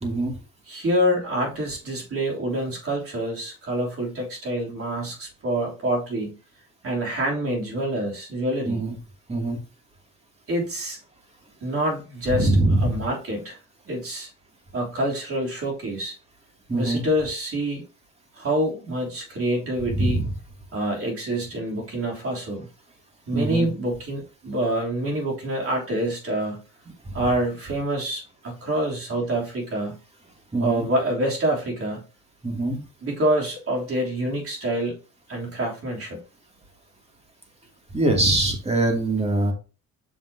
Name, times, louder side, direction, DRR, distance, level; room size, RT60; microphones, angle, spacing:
voice 1, 0.0-0.3 8.7-8.9 9.3-9.6 12.3-13.0 16.7-17.0 19.9-20.3 23.3-23.7 27.1-27.2 30.5-30.8 32.4-32.8 37.9-39.5, right 2 dB, 20° right, 2.5 m, -23 dB
voice 2, 0.7-6.4 6.8-8.8 10.5-11.0 11.6-12.5 12.8-13.6 13.9-14.3 14.7-16.1 16.7-17.8 18.3-20.2 20.7-22.7 23.3-26.6 27.1-30.0 30.6-32.0 33.0-35.0 35.3-36.2, right 1 dB, 50° right, 3.2 m, -26 dB
6.8 x 6.4 x 2.8 m
cardioid pair, 90°, 30 cm